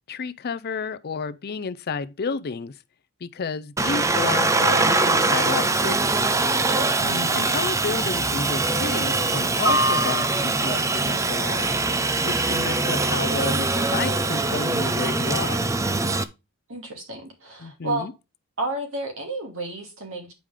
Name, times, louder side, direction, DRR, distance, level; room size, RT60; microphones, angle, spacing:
voice 1, 0.1-2.7 3.2-6.2 7.3-11.7 12.2-15.6 17.6-18.1, left 5 dB, 45° left, 0.5 m, -31 dB
Aircraft, 3.8-16.2, right 3 dB, 15° right, 0.4 m, -22 dB
voice 2, 7.0-7.5 16.7-18.1 18.6-20.3, right 1 dB, 60° right, 2.5 m, -31 dB
9.1 x 4.9 x 3.6 m
head